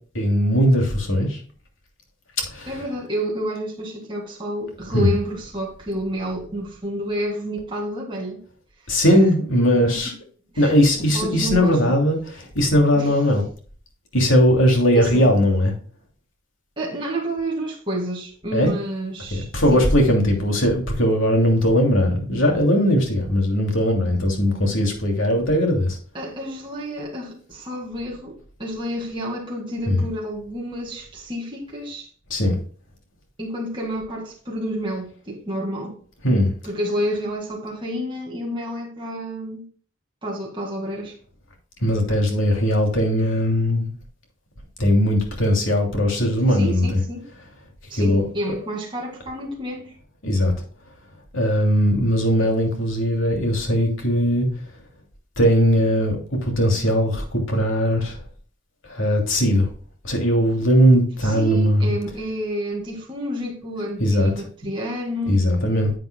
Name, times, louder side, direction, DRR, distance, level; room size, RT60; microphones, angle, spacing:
voice 1, 0.1-1.4 2.5-2.7 4.9-5.1 8.9-10.1 10.6-12.2 12.5-13.4 14.1-15.7 18.5-18.7 19.3-26.0 29.9-30.0 32.3-32.6 36.2-36.5 41.8-43.9 44.8-46.9 47.9-48.2 50.2-50.5 51.3-54.5 55.4-58.2 58.9-59.7 60.0-61.9 64.0-64.3 65.3-65.9, equal, 80° left, 2.9 m, -19 dB
voice 2, 2.7-8.4 8.8-9.0 9.9-10.1 10.5-12.0 13.0-13.2 14.9-15.3 16.8-19.9 26.1-32.1 33.4-36.0 36.6-39.6 40.2-41.2 46.5-47.3 47.9-49.9 61.2-65.4, equal, 25° right, 2.0 m, -29 dB
10.0 x 7.8 x 2.3 m
head